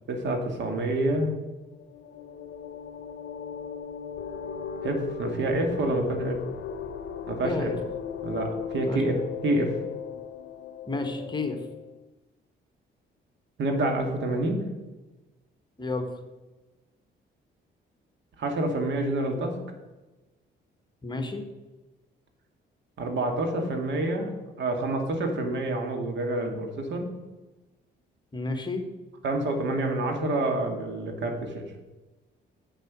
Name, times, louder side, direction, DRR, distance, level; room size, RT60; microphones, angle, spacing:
voice 1, 0.1-1.3 4.8-6.4 7.3-7.7 8.2-9.8 13.6-14.6 18.4-19.6 23.0-24.3 24.6-27.1 29.2-31.6, right 2 dB, 65° right, 4 dB, 1.8 m, -27 dB
sound 1, 1.7-11.9, left 7 dB, 70° left, 0.7 m, -37 dB
voice 2, 7.4-7.8 8.9-9.0 10.9-11.6 15.8-16.1 21.0-21.4 28.3-28.8, left 3 dB, 20° left, 5 dB, 1.4 m, -31 dB
8.1 x 6.7 x 6.1 m, 1.1 s
cardioid pair, 90°, 20 cm